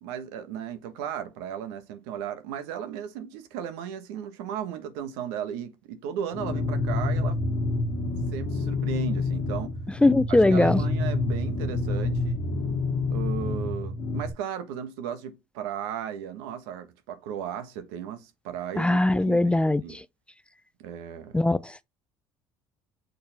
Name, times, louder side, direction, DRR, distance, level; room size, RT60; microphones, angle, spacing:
voice 1, 0.0-7.4 8.3-9.7 10.3-12.4 13.1-20.0 20.8-21.4, right 9 dB, 80° right, 1.2 m, -35 dB
sound 1, 6.3-14.3, left 3 dB, 45° left, 1.3 m, -28 dB
voice 2, 10.0-10.8 18.8-20.0 21.3-21.6, left 2 dB, 10° left, 0.4 m, -20 dB
6.6 x 4.3 x 3.4 m
supercardioid pair, 75°, 12 cm